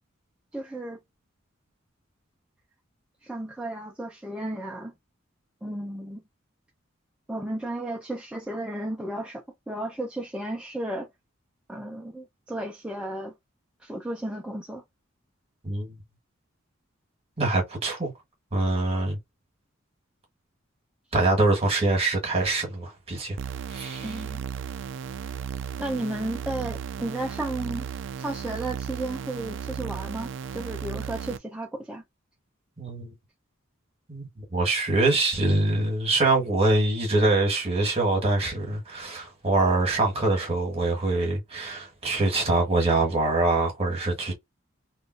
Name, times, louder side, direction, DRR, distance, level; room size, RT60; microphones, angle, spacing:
voice 1, 0.5-1.0 3.2-4.9 5.6-6.2 7.3-11.1 11.7-13.3 13.8-14.8 24.0-24.5 25.8-32.0, right 1 dB, 5° right, 0.4 m, -33 dB
voice 2, 17.4-18.1 18.5-19.2 21.1-23.4 23.7-24.1 32.8-33.1 34.1-44.3, right 2 dB, 30° right, 1.5 m, -24 dB
sound 1, 23.4-31.4, right 7 dB, 65° right, 0.4 m, -35 dB
3.5 x 2.5 x 2.5 m
head